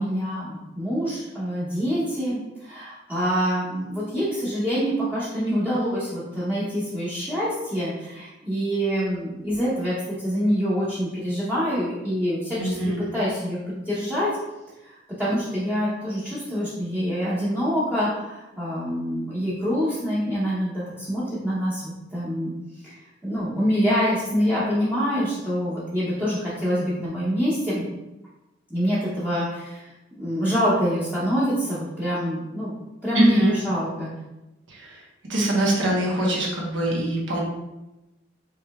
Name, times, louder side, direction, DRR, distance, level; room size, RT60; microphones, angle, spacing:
voice 1, 0.0-14.3 14.8-22.5 22.8-22.9 23.2-27.9 28.7-29.9 30.2-32.7 33.0-34.1, equal, 10° right, -10 dB, 0.7 m, -25 dB
voice 2, 12.6-13.1 33.1-33.5 34.7-35.0 35.3-37.4, right 1 dB, 75° right, -3 dB, 1.1 m, -23 dB
4.9 x 3.1 x 2.3 m, 0.99 s
head